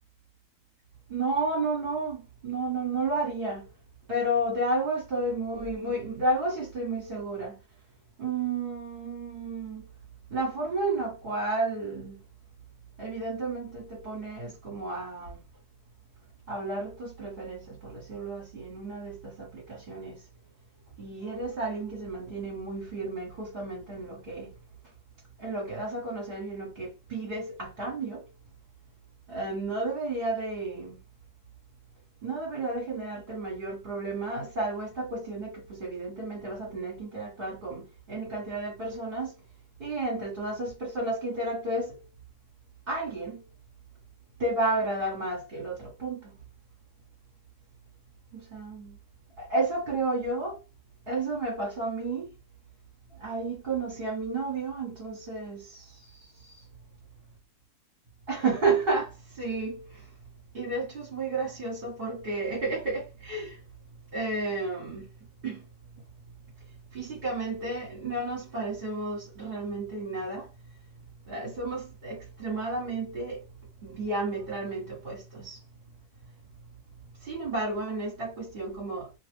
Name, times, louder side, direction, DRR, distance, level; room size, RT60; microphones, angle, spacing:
voice 1, 1.1-3.7 4.1-7.6 8.2-9.8 10.3-12.2 13.0-15.4 16.5-20.2 21.0-24.5 25.4-28.2 29.3-31.0 32.2-39.3 39.8-42.0 42.9-43.4 44.4-46.4 48.3-49.0 49.4-50.6 51.1-52.3 53.2-56.5 58.3-60.1 60.5-63.6 64.1-65.1 65.4-65.6 66.9-70.5 71.3-73.4 73.8-75.6 77.2-79.2, right 2 dB, 40° right, 1.3 m, -32 dB
2.9 x 2.2 x 3.3 m
omnidirectional pair, 1.5 m